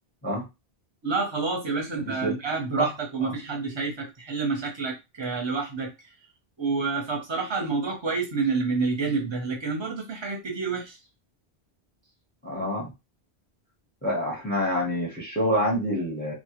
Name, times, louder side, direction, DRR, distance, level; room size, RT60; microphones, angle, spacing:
voice 1, 1.0-5.9 6.6-11.0, right 4 dB, 30° right, 0 dB, 0.6 m, -28 dB
voice 2, 12.4-12.9 14.0-16.3, equal, 10° left, -2 dB, 0.6 m, -27 dB
2.1 x 2.1 x 2.9 m, 0.24 s
omnidirectional pair, 1.1 m